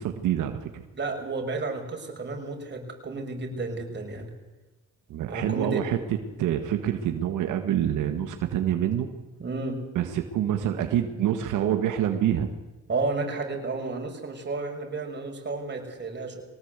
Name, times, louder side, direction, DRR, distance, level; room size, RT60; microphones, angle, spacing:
voice 1, 0.0-0.8 5.1-9.1 9.9-12.5, right 10 dB, 85° right, 6 dB, 1.8 m, -26 dB
voice 2, 0.9-4.3 5.3-5.8 9.4-9.8 12.9-16.4, right 3 dB, 35° right, 2 dB, 6.4 m, -32 dB
22.5 x 18.5 x 8.2 m, 1.2 s
cardioid pair, 90°, 30 cm